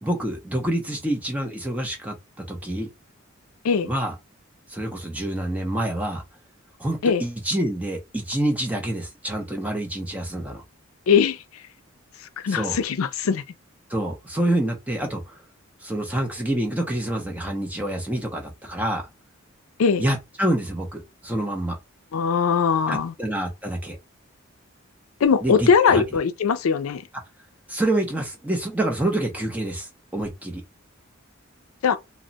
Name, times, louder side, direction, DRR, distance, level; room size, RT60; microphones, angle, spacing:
voice 1, 0.0-2.9 3.8-4.1 4.7-6.2 6.8-10.6 12.5-12.8 13.9-15.4 15.8-19.1 20.0-21.8 22.9-24.0 25.4-26.0 27.7-30.6, right 1 dB, 5° right, 0.6 m, -27 dB
voice 2, 11.1-11.4 12.4-13.4 19.8-20.0 22.1-23.1 25.2-27.0 31.8-32.0, left 6 dB, 90° left, 0.4 m, -20 dB
2.2 x 2.0 x 3.8 m
head